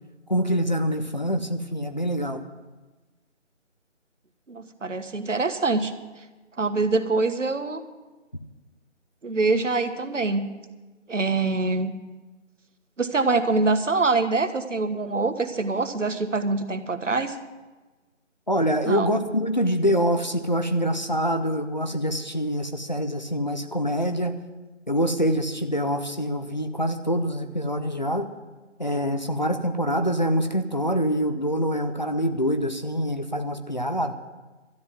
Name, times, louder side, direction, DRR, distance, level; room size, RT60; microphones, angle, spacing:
voice 1, 0.3-2.4 18.5-24.4 24.9-28.3 28.8-34.1, equal, 35° left, 7 dB, 0.7 m, -25 dB
voice 2, 4.5-5.9 6.6-7.8 9.2-10.5 11.1-11.9 13.0-17.4 18.8-19.1, right 3 dB, 75° right, 10 dB, 1.4 m, -24 dB
13.0 x 9.9 x 7.4 m, 1.2 s
figure-of-eight pair, 175°, 37 cm